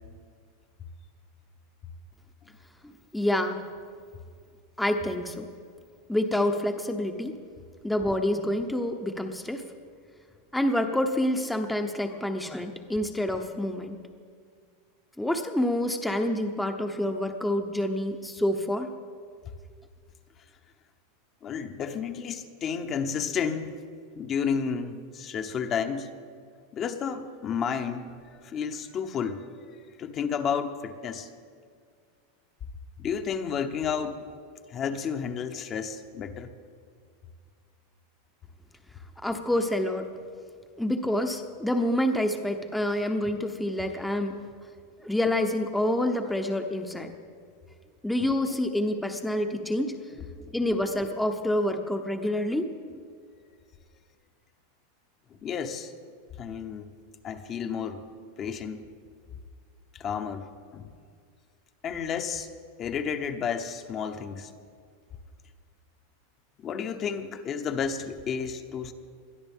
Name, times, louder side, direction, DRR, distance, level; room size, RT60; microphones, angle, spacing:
voice 1, 3.1-3.6 4.8-5.5 6.1-7.4 7.8-9.6 10.5-14.0 15.2-18.9 39.2-40.1 40.8-44.4 45.0-47.1 48.0-50.3 50.5-53.0, left 1 dB, 5° left, 5 dB, 0.9 m, -27 dB
voice 2, 21.4-23.7 24.2-26.1 26.7-31.3 33.0-34.3 34.7-36.5 48.2-48.3 50.5-50.6 52.6-52.7 55.3-55.9 56.4-56.9 57.2-58.0 58.4-58.9 59.9-60.9 61.8-62.5 62.8-64.5 66.6-68.9, left 7 dB, 35° left, 6 dB, 1.0 m, -32 dB
21.0 x 12.5 x 3.6 m, 2.1 s
hypercardioid pair, 115°, 0 cm